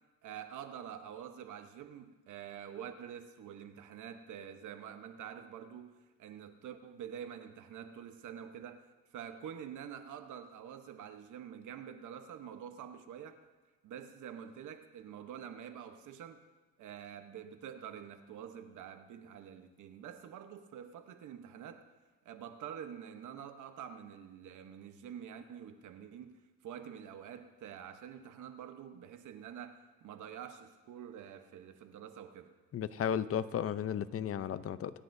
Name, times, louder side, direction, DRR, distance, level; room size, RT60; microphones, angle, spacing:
voice 1, 0.2-13.5 13.8-16.5 16.8-21.9 22.2-32.5, right 8 dB, 80° right, 1.0 m, -47 dB
voice 2, 32.7-34.9, left 9 dB, 50° left, 0.6 m, -34 dB
26.0 x 10.0 x 2.7 m
cardioid pair, 90°, 30 cm